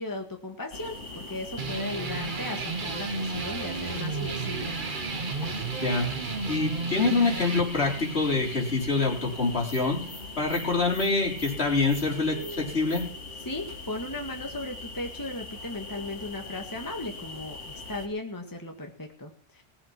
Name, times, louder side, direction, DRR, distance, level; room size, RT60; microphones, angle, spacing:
voice 1, 0.0-4.8 13.5-19.6, left 2 dB, 15° left, 3 dB, 1.8 m, -36 dB
sound 1, 0.7-18.1, left 2 dB, 80° left, 2.3 m, -41 dB
sound 2, 1.6-10.6, right 4 dB, 45° right, 1.2 m, -34 dB
voice 2, 6.5-10.0 10.4-13.0, left 3 dB, 60° left, -2 dB, 4.3 m, -25 dB
18.5 x 7.8 x 6.0 m, 0.43 s
omnidirectional pair, 1.2 m